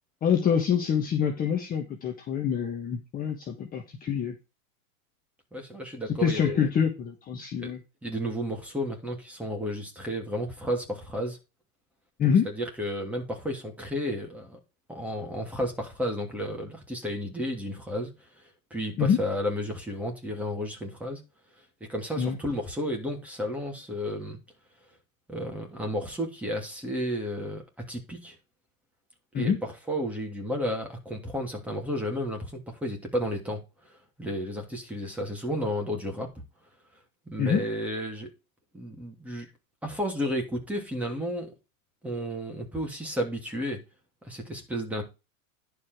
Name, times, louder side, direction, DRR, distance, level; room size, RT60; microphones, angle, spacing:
voice 1, 0.2-4.3 6.2-7.8 12.2-12.5 19.0-19.2 22.2-22.4 29.3-29.6 37.4-37.6, left 7 dB, 20° left, 1.4 m, -26 dB
voice 2, 5.5-6.7 7.6-7.7 8.0-11.4 12.2-14.6 14.9-18.1 18.7-21.2 21.9-24.4 25.3-28.4 29.3-33.6 34.2-36.3 37.3-38.3 38.7-39.5 39.8-41.5 42.0-43.8 44.2-45.0, equal, 5° right, 2.8 m, -32 dB
11.0 x 5.1 x 4.6 m
supercardioid pair, 155°, 43 cm